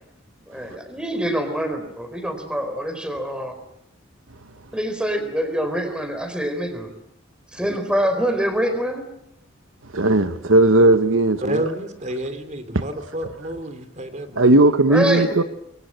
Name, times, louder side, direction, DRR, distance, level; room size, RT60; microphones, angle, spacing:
voice 1, 0.5-3.5 4.7-6.9 7.5-9.1 14.9-15.4, equal, 5° right, 4.1 m, -25 dB
voice 2, 9.9-11.6 14.4-15.4, right 2 dB, 85° right, 1.3 m, -16 dB
voice 3, 11.4-14.5, right 1 dB, 35° right, 3.0 m, -29 dB
25.5 x 23.5 x 7.6 m
head